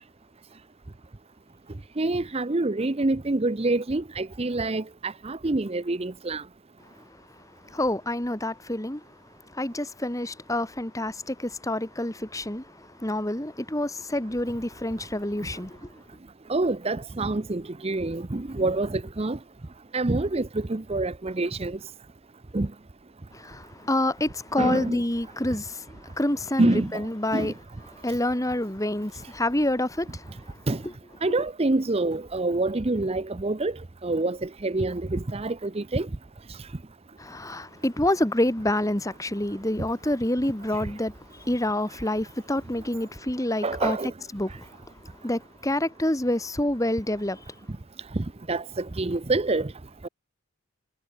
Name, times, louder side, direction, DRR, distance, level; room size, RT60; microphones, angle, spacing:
voice 1, 2.0-6.4 16.5-19.4 19.9-21.7 22.5-22.7 24.6-25.0 26.6-26.9 27.3-27.5 30.7-30.8 31.2-33.7 34.0-34.4 34.6-36.1 43.6-44.1 48.5-48.6 49.0-49.7, right 2 dB, 25° right, 0.6 m, -26 dB
voice 2, 7.7-9.0 9.5-12.6 13.0-15.8 23.3-25.8 26.2-27.5 28.0-30.2 30.8-30.9 37.2-41.1 41.5-44.0 44.3-44.5 45.2-47.4, left 1 dB, 15° left, 1.7 m, -27 dB
head